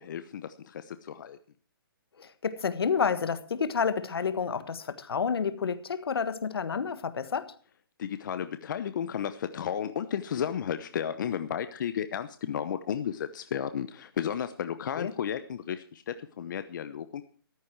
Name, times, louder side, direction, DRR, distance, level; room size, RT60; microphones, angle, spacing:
voice 1, 0.0-1.4 8.0-17.2, left 8 dB, 55° left, 11 dB, 0.9 m, -33 dB
voice 2, 2.2-7.5 15.0-15.1, left 6 dB, 80° left, 13 dB, 1.5 m, -29 dB
14.0 x 13.0 x 4.7 m, 0.43 s
hypercardioid pair, 155°, 13 cm